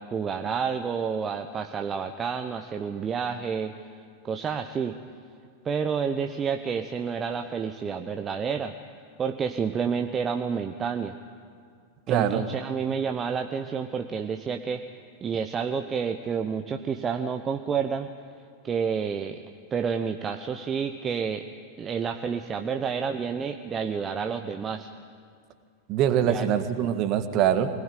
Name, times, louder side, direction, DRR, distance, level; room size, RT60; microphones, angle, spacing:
voice 1, 0.0-3.7 4.2-5.0 5.6-8.7 9.2-11.1 12.1-14.8 15.2-18.1 18.6-19.4 19.7-21.4 21.8-24.9 26.2-26.5, right 6 dB, 20° right, 6 dB, 1.0 m, -29 dB
voice 2, 12.1-12.4 25.9-27.7, right 9 dB, 40° right, 9 dB, 1.7 m, -23 dB
23.5 x 19.0 x 9.3 m, 2.1 s
figure-of-eight pair, 90°, 0 cm